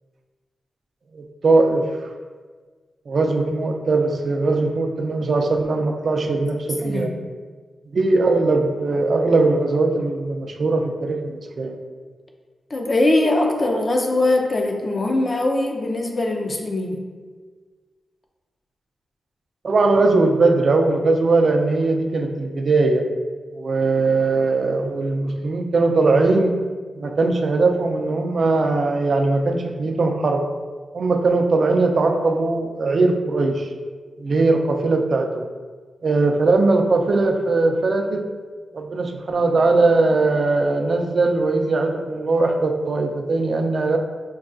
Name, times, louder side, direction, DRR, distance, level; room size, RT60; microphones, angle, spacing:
voice 1, 1.1-2.1 3.1-7.1 7.9-11.8 19.6-23.1 23.5-26.6 26.9-30.4 30.9-33.7 34.2-35.5 36.0-38.3 38.7-44.0, right 3 dB, 60° right, 4 dB, 0.4 m, -20 dB
voice 2, 6.8-7.1 12.7-17.0, left 2 dB, 40° left, 2 dB, 0.5 m, -21 dB
5.2 x 2.2 x 2.5 m, 1.5 s
cardioid pair, 70°, 0 cm